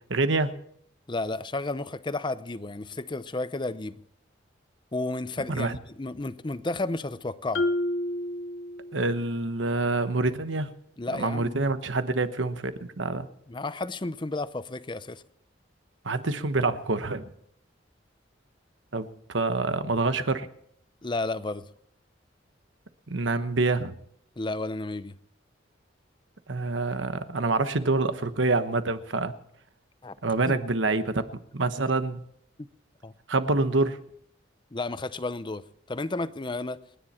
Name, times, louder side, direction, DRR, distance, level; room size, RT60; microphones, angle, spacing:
voice 1, 0.1-0.5 5.5-5.8 8.9-10.7 11.1-13.3 16.0-17.3 18.9-20.5 23.1-24.0 26.5-29.3 30.2-32.2 33.3-34.0, right 3 dB, 80° right, 10 dB, 1.2 m, -26 dB
voice 2, 1.1-4.0 4.9-7.6 11.0-11.5 13.5-15.2 21.0-21.6 24.4-25.1 30.0-30.1 30.5-30.6 33.0-33.1 34.7-35.6 35.9-36.8, left 2 dB, 25° left, 14 dB, 0.6 m, -32 dB
Marimba xylophone, 7.5-9.3, left 1 dB, 85° left, 1.0 m, -30 dB
29.0 x 10.5 x 4.4 m, 0.68 s
head